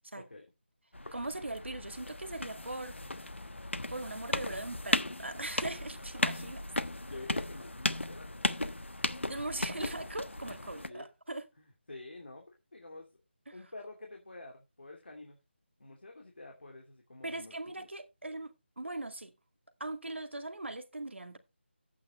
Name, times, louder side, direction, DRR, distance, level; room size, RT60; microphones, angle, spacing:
sound 1, 0.9-10.9, left 2 dB, 80° left, 1.1 m, -36 dB
voice 1, 1.1-2.9 3.9-6.6 9.3-11.5 13.5-13.6 17.2-19.3 19.8-21.4, right 2 dB, 75° right, 2.1 m, -40 dB
voice 2, 7.0-9.0 10.8-11.1 11.6-13.1 13.5-15.4 15.8-17.9, left 2 dB, 60° left, 2.7 m, -48 dB
12.5 x 8.7 x 3.2 m
figure-of-eight pair, 160°, 6 cm